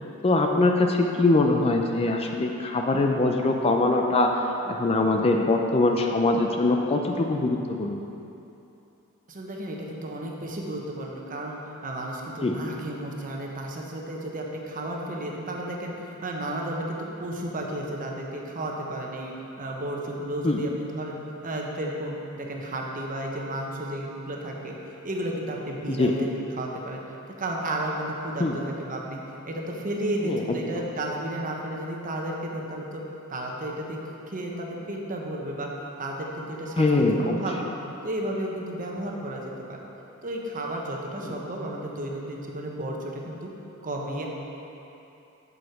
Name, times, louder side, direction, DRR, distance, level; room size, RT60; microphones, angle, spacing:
voice 1, 0.2-4.3 4.7-8.0 12.4-12.5 20.4-20.6 25.9-26.1 28.4-28.6 30.2-30.4 36.8-37.4 41.3-41.4, left 2 dB, 25° left, 2 dB, 0.4 m, -23 dB
voice 2, 9.3-21.2 21.4-24.8 25.0-26.3 26.6-27.0 27.4-29.2 29.5-33.0 33.3-34.0 34.3-35.7 36.0-37.7 38.0-39.9 40.2-43.5 43.8-44.3, right 1 dB, 40° right, -1 dB, 1.0 m, -33 dB
7.8 x 6.3 x 4.6 m, 2.9 s
head